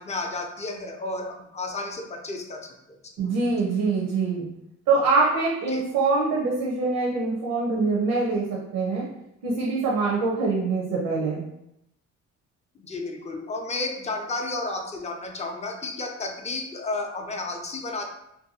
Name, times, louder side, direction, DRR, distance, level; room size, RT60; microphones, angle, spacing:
voice 1, 0.0-3.3 5.7-5.8 12.8-18.0, left 2 dB, 25° left, 3 dB, 0.4 m, -32 dB
voice 2, 3.2-4.5 4.9-9.1 9.4-11.4, right 3 dB, 80° right, -3 dB, 0.6 m, -24 dB
2.7 x 2.2 x 2.7 m, 0.82 s
cardioid pair, 90°, 30 cm